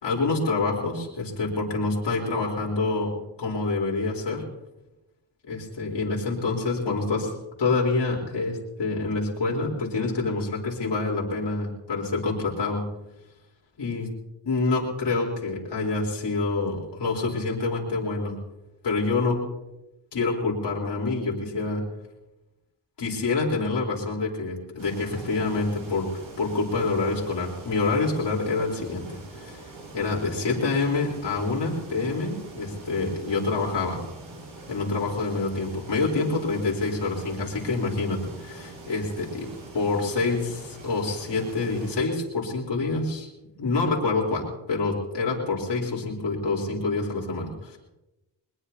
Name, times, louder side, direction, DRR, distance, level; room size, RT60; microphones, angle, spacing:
voice 1, 0.0-3.1 3.4-4.4 5.5-7.3 7.6-12.8 13.8-14.1 14.4-18.4 18.8-19.4 20.1-21.8 23.0-26.1 26.4-29.6 29.9-34.0 34.7-39.5 39.7-43.3 43.6-47.8, left 3 dB, 65° left, -3 dB, 4.1 m, -27 dB
sound 1, 24.8-42.0, right 2 dB, 80° right, 6.8 m, -44 dB
22.0 x 21.0 x 2.9 m, 0.95 s
cardioid pair, 85°, 44 cm